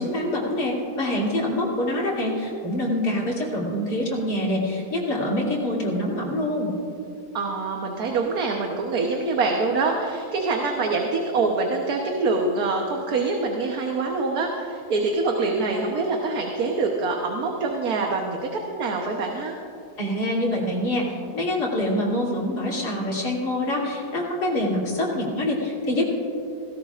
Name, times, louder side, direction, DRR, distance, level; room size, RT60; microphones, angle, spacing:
voice 1, 0.0-6.7 20.0-26.0, left 1 dB, 85° left, -4 dB, 3.4 m, -25 dB
voice 2, 7.3-19.6, right 3 dB, 70° right, 1 dB, 1.5 m, -25 dB
17.5 x 17.0 x 2.5 m, 2.8 s
omnidirectional pair, 1.7 m